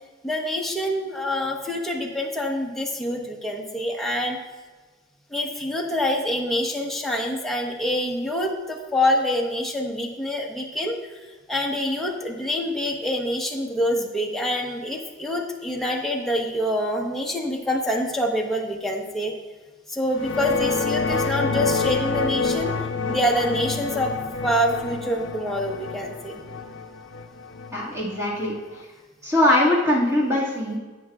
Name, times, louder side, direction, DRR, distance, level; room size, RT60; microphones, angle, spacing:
voice 1, 0.2-4.4 5.3-11.0 11.5-19.3 19.9-22.8 23.1-26.4, left 1 dB, ahead, -1 dB, 1.0 m, -26 dB
sound 1, 20.1-28.8, left 4 dB, 70° left, 0.5 m, -28 dB
voice 2, 27.7-28.9 29.2-30.8, left 1 dB, 15° right, -5 dB, 1.9 m, -22 dB
11.0 x 8.5 x 2.4 m, 1.3 s
head